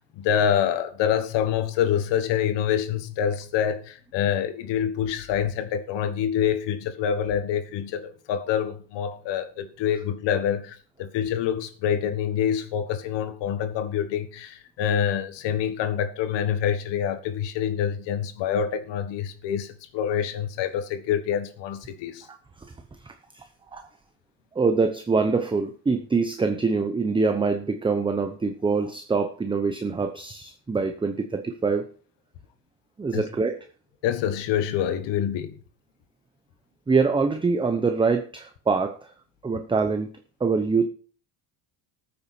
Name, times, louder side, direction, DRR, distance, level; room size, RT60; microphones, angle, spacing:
voice 1, 0.2-22.3 33.1-33.2 34.0-35.6, left 9 dB, 70° left, 1.7 m, -26 dB
voice 2, 22.3-22.7 23.0-23.4 23.7-23.8 24.5-31.9 33.0-33.6 36.9-39.1 39.4-40.1 40.4-40.9, right 4 dB, 10° right, 0.8 m, -24 dB
14.0 x 8.6 x 4.4 m
cardioid pair, 145°, 45 cm